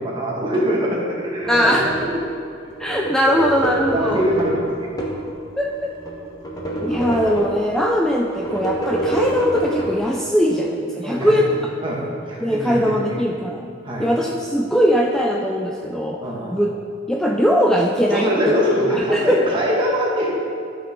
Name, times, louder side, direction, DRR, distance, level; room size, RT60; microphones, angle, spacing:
voice 1, 0.0-2.2 3.7-4.9 11.0-11.5 11.8-13.1 13.8-14.1 16.2-16.5 18.1-20.3, equal, 25° right, -5 dB, 1.9 m, -23 dB
sound 1, 1.4-2.2 2.7-5.3 5.8-7.8 8.3-9.9, right 1 dB, 20° left, 1.1 m, -26 dB
voice 2, 1.5-1.8 2.8-4.2 5.6-5.9 6.8-11.5 12.4-13.7 14.0-16.2 16.5-16.7 17.1-18.3 18.9-19.4, equal, 5° left, -2 dB, 0.4 m, -20 dB
12.5 x 5.9 x 3.7 m, 2.5 s
head